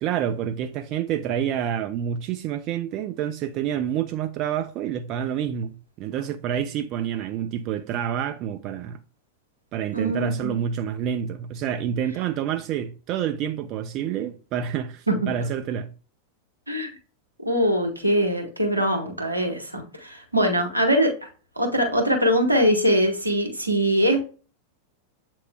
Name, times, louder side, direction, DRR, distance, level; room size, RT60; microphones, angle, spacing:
voice 1, 0.0-9.0 9.7-15.9, right 9 dB, 40° right, 0.4 m, -28 dB
voice 2, 9.9-10.6 15.1-15.3 16.7-16.9 17.4-21.1 21.6-24.2, equal, 85° right, 1.1 m, -22 dB
7.9 x 3.0 x 2.2 m
figure-of-eight pair, 90°, 0 cm